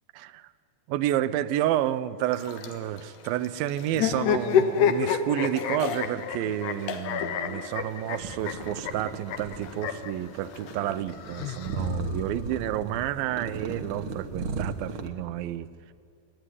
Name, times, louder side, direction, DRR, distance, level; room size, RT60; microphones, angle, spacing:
voice 1, 0.1-0.5 0.9-15.7, right 12 dB, 85° right, 14 dB, 2.5 m, -30 dB
sound 1, 2.3-11.0, left 7 dB, 90° left, 3.2 m, -42 dB
sound 2, 3.9-10.1 11.1-12.2, left 8 dB, 70° left, 2.2 m, -28 dB
sound 3, 8.0-15.1, right 3 dB, 60° right, 1.3 m, -36 dB
29.0 x 10.5 x 9.8 m, 2.4 s
omnidirectional pair, 4.1 m